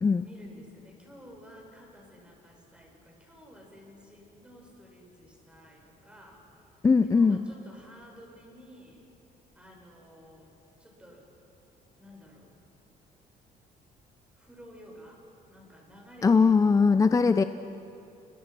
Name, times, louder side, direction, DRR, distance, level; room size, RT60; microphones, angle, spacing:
voice 1, 0.2-6.7 7.1-9.0 9.5-10.5 10.8-11.3 12.0-12.5 14.3-15.2 15.5-16.5, equal, 5° right, -1 dB, 6.9 m, -52 dB
voice 2, 6.8-7.4 16.2-17.4, left 5 dB, 20° left, 11 dB, 0.6 m, -20 dB
29.5 x 23.5 x 6.0 m, 2.7 s
cardioid pair, 110°, 17 cm